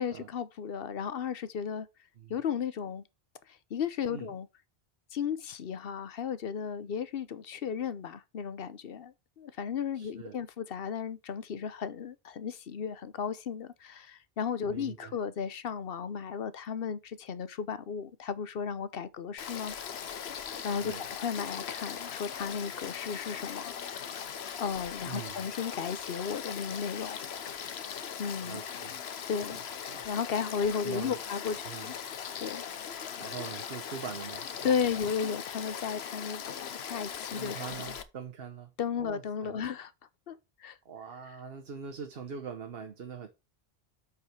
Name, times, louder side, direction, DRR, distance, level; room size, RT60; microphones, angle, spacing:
voice 1, 0.0-1.9 2.3-3.0 3.7-4.5 5.1-20.0 20.6-24.1 24.6-27.6 28.2-28.6 29.3-29.6 30.0-31.9 32.4-32.6 34.6-37.6 38.8-39.9 40.3-40.4 40.6-40.8, left 7 dB, 70° left, 0.9 m, -34 dB
voice 2, 9.9-10.4 14.7-15.1 20.8-21.1 25.0-25.4 28.4-29.0 29.5-30.0 30.8-31.2 31.6-31.9 33.2-34.8 37.3-38.7 39.0-39.6 40.8-43.3, right 6 dB, 70° right, 1.2 m, -43 dB
Frog / Stream, 19.4-38.0, left 8 dB, 90° left, 1.1 m, -40 dB
8.3 x 4.8 x 4.4 m
omnidirectional pair, 1.0 m